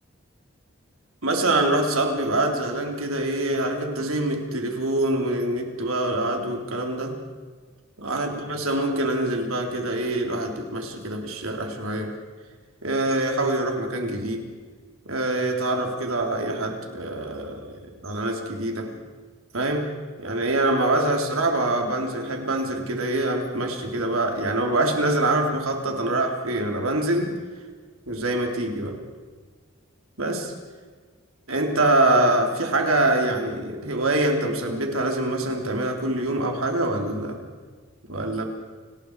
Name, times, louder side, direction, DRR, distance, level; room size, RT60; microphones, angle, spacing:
voice 1, 1.2-7.2 8.0-12.1 12.8-14.5 15.1-18.9 19.5-19.9 20.2-27.4 28.1-29.0 30.2-30.5 31.5-37.4 38.1-38.4, right 1 dB, 90° right, 2 dB, 3.7 m, -25 dB
29.0 x 19.5 x 4.9 m, 1.5 s
head